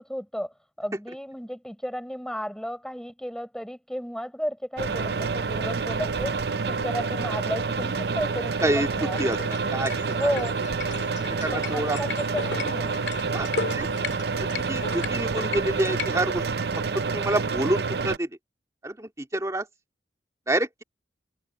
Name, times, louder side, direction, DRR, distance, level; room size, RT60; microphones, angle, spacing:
voice 1, 0.0-6.4 6.7-9.2 10.1-10.5 11.5-13.0, equal, 5° left, 5.9 m, -33 dB
sound 1, 4.8-18.2, right 4 dB, 65° right, 0.6 m, -28 dB
sound 2, 9.1-16.1, left 5 dB, 85° left, 2.2 m, -36 dB
voice 2, 9.2-10.3 11.4-12.0 13.3-13.5 13.7-13.9 14.4-16.4 16.9-18.4 18.8-19.7 20.5-20.8, right 1 dB, 20° right, 2.5 m, -28 dB
head